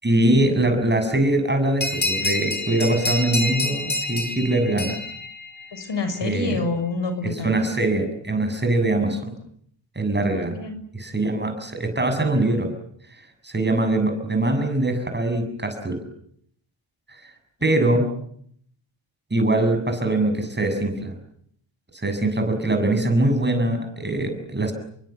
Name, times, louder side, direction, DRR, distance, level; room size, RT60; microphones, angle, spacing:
voice 1, 0.0-5.0 6.2-6.6 7.4-9.3 10.0-10.6 11.0-12.7 13.4-16.0 17.6-18.1 19.3-21.1 22.0-24.7, right 2 dB, 20° right, 6 dB, 7.2 m, -22 dB
sound 1, 1.8-6.0, left 2 dB, 20° left, 5.0 m, -28 dB
voice 2, 5.7-7.6 8.9-9.0 10.3-10.8 17.8-18.0, left 3 dB, 60° left, 9 dB, 6.9 m, -28 dB
30.0 x 23.5 x 8.2 m, 0.68 s
wide cardioid pair, 155°, 49 cm